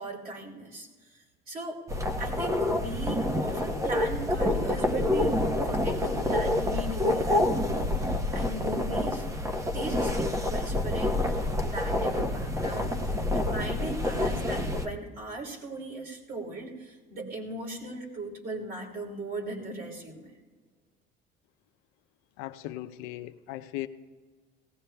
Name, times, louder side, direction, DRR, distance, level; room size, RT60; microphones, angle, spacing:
voice 1, 0.0-1.8 2.2-5.4 5.6-9.3 9.6-20.4, right 2 dB, 45° right, 1 dB, 3.1 m, -38 dB
sound 1, 1.9-14.9, left 1 dB, 15° right, 0.9 m, -28 dB
voice 2, 22.4-23.9, left 15 dB, 85° left, 10 dB, 0.6 m, -38 dB
18.5 x 17.0 x 2.3 m, 1.5 s
cardioid pair, 100°, 21 cm